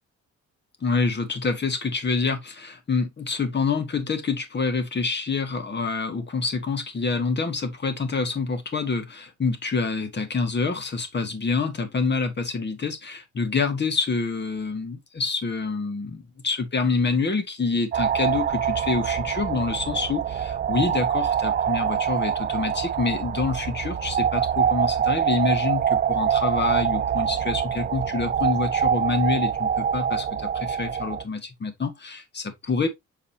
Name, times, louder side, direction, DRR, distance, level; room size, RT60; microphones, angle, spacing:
voice 1, 0.8-32.9, left 4 dB, 35° left, 2.0 m, -27 dB
sound 1, 17.9-31.2, right 8 dB, 35° right, 0.4 m, -25 dB
6.8 x 4.9 x 2.8 m
cardioid pair, 90°, 30 cm